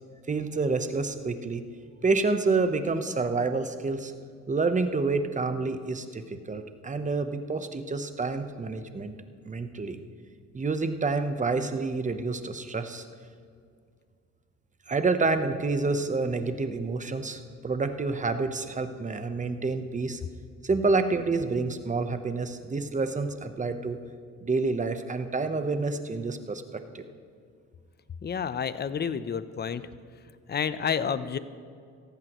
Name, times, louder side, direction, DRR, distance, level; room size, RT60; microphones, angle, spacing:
voice 1, 0.3-1.6 2.0-4.1 4.5-9.1 9.4-10.0 10.5-13.0 14.9-20.2 20.6-24.0 24.4-26.6 26.9-27.0, right 3 dB, 25° right, 9 dB, 0.9 m, -28 dB
voice 2, 28.2-29.8 30.5-31.4, left 7 dB, 35° left, 14 dB, 0.6 m, -29 dB
17.5 x 14.0 x 3.1 m, 2.2 s
cardioid pair, 90°, 30 cm